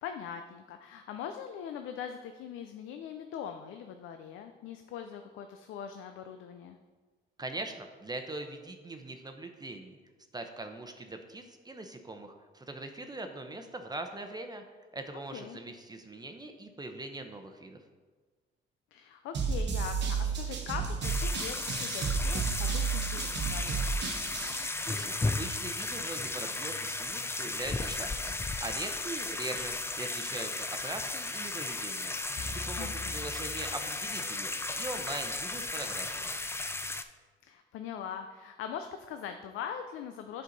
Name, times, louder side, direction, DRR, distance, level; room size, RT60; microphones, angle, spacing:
voice 1, 0.0-6.8 15.1-15.6 18.9-23.9 32.8-33.2 37.5-40.4, left 8 dB, 90° left, 7 dB, 0.5 m, -41 dB
voice 2, 7.4-10.0 10.3-14.6 14.9-17.8 24.8-32.2 32.5-34.5 34.7-36.4, right 2 dB, 20° right, 5 dB, 0.7 m, -41 dB
sound 1, 19.3-24.7, right 5 dB, 60° right, 1.1 m, -32 dB
sound 2, 21.0-37.0, left 2 dB, 10° left, 0.4 m, -35 dB
sound 3, 32.4-34.5, left 3 dB, 40° left, 0.9 m, -43 dB
8.2 x 5.5 x 3.9 m, 1.4 s
cardioid pair, 90°, 20 cm